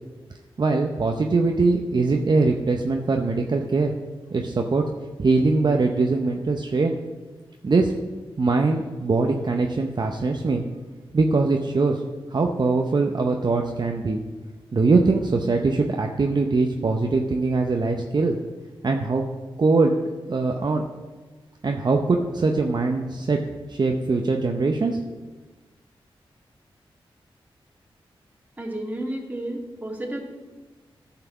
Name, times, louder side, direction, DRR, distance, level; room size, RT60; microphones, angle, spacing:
voice 1, 0.6-3.9 4.3-4.8 5.2-7.0 7.6-7.9 8.4-10.6 11.1-12.0 12.3-14.2 14.7-18.4 18.8-19.2 19.6-19.9 20.3-20.8 21.6-23.4 23.7-25.0, right 3 dB, 50° right, 2 dB, 0.7 m, -22 dB
voice 2, 28.6-30.2, right 1 dB, 15° right, -1 dB, 2.4 m, -31 dB
11.0 x 5.8 x 5.8 m, 1.3 s
cardioid pair, 50°, 10 cm